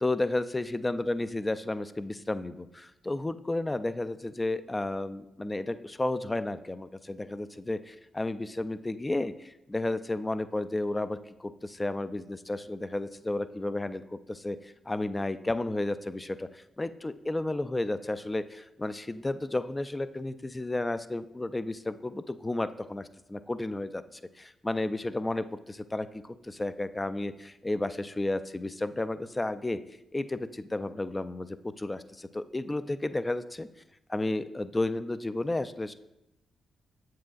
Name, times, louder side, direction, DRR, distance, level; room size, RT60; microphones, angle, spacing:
voice 1, 0.0-24.0 24.4-29.8 30.1-33.7 34.1-35.9, left 2 dB, 20° left, 12 dB, 0.3 m, -32 dB
7.6 x 7.1 x 2.3 m, 0.88 s
cardioid pair, 70°, 0 cm